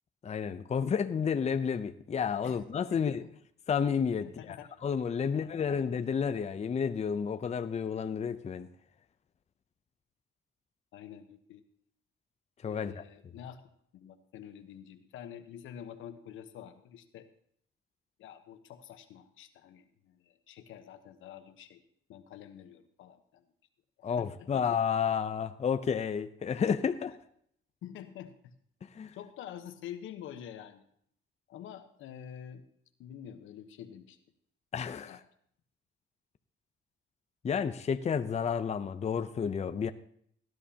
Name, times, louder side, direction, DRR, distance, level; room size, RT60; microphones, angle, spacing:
voice 1, 0.2-3.2 3.7-4.6 4.8-8.7 12.6-13.0 24.0-27.1 28.9-29.1 34.7-35.2 37.4-39.9, left 7 dB, 35° left, 0.6 m, -31 dB
voice 2, 2.9-3.3 4.2-4.7 5.2-5.8 10.9-11.6 12.7-13.6 13.9-17.3 18.2-21.8 22.1-23.4 24.2-24.6 27.8-28.5 29.1-30.8 31.5-32.6 33.0-34.2 35.1-35.2, left 9 dB, 85° left, 1.1 m, -47 dB
18.0 x 11.0 x 2.8 m
cardioid pair, 90°, 20 cm